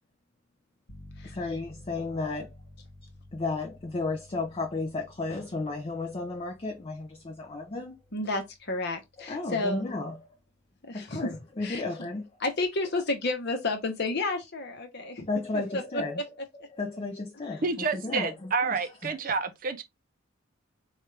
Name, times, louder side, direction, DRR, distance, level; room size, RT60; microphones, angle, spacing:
sound 1, 0.9-11.4, left 1 dB, 75° left, 1.0 m, -53 dB
voice 1, 1.2-2.5 3.3-8.0 9.3-10.2 10.9-12.3 15.2-16.2 16.5-17.6 17.9-19.2, left 3 dB, 25° left, 0.4 m, -33 dB
voice 2, 8.1-9.9 10.8-11.8 12.4-15.3 15.5-16.2 17.4-17.6 19.3-19.4, left 2 dB, 50° left, 0.9 m, -31 dB
voice 3, 17.6-19.8, right 4 dB, 40° right, 0.5 m, -29 dB
4.3 x 2.4 x 3.3 m
head